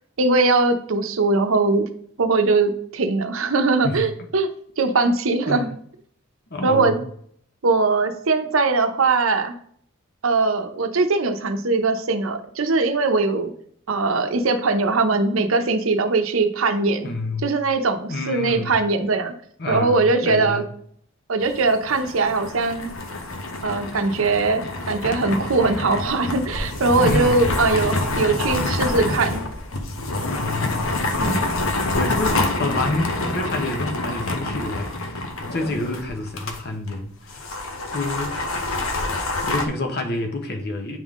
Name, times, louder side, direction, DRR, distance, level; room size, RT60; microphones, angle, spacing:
voice 1, 0.2-1.9 2.2-4.5 4.8-5.7 6.6-7.0 7.6-9.5 10.2-13.5 13.9-17.1 17.4-19.3 19.7-20.6 21.3-22.9 23.6-29.4 31.2-31.5, right 3 dB, 75° right, 0.7 m, -21 dB
voice 2, 6.5-7.0 17.0-17.5 18.1-18.8 19.6-20.6 26.8-27.5 30.3-30.9 31.9-37.5 37.9-38.3 39.4-41.0, left 2 dB, 50° left, 0.9 m, -28 dB
sound 1, 21.4-36.6 36.9-37.0 37.3-39.7, left 2 dB, 75° left, 0.9 m, -27 dB
9.0 x 3.6 x 3.6 m
head